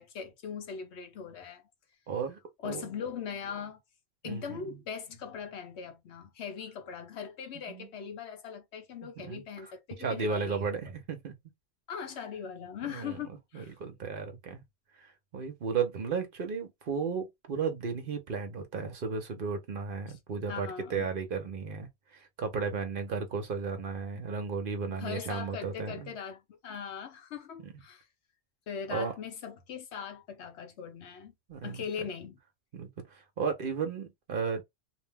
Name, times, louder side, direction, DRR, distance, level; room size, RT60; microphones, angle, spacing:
voice 1, 0.0-1.7 2.6-3.8 4.2-10.8 11.9-13.9 20.1-20.2 20.5-21.1 24.9-28.1 28.7-31.3 31.6-32.4, left 7 dB, 75° left, 1.0 m, -40 dB
voice 2, 2.1-2.9 4.2-4.8 7.7-7.9 9.0-9.4 10.0-11.3 12.9-13.2 13.5-14.6 15.0-26.1 28.9-29.1 31.5-31.8 32.7-34.6, right 5 dB, 55° right, 0.8 m, -34 dB
2.6 x 2.1 x 3.4 m
omnidirectional pair, 1.2 m